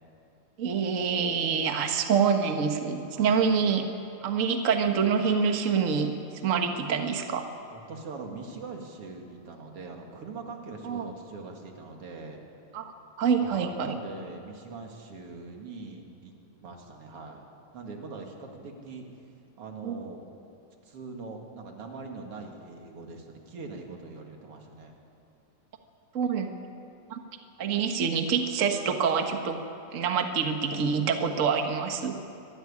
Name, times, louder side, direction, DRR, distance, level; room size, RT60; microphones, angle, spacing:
voice 1, 0.6-3.8 4.2-6.1 6.4-7.5 10.8-11.1 12.7-12.9 13.2-14.0 19.8-20.0 26.1-26.5 27.1-27.2 27.6-29.6 29.9-32.2, right 6 dB, 90° right, 5 dB, 0.7 m, -26 dB
voice 2, 3.1-3.5 7.7-12.4 13.4-16.3 16.6-17.4 17.7-19.1 19.6-20.2 20.8-25.0, right 4 dB, 50° right, 2 dB, 2.8 m, -42 dB
25.0 x 12.5 x 9.8 m, 2.6 s
omnidirectional pair, 3.6 m